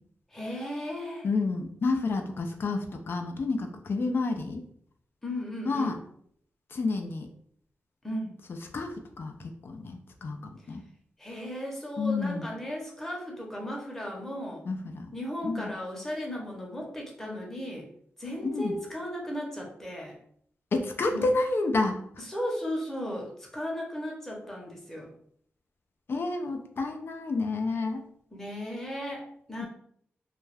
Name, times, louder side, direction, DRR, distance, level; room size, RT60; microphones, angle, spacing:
voice 1, 0.3-1.3 5.2-6.0 8.0-8.4 11.2-14.6 15.1-17.9 18.2-20.2 21.1-21.3 22.2-25.1 28.3-29.7, equal, 5° left, -1 dB, 0.8 m, -36 dB
voice 2, 1.2-4.7 5.7-6.0 6.7-7.3 8.5-10.8 12.0-12.5 14.7-15.1 15.4-15.7 18.4-18.8 20.7-22.0 26.1-28.0 29.6-29.7, left 3 dB, 55° left, 5 dB, 0.5 m, -30 dB
2.3 x 2.2 x 3.3 m, 0.63 s
cardioid pair, 70°, 5 cm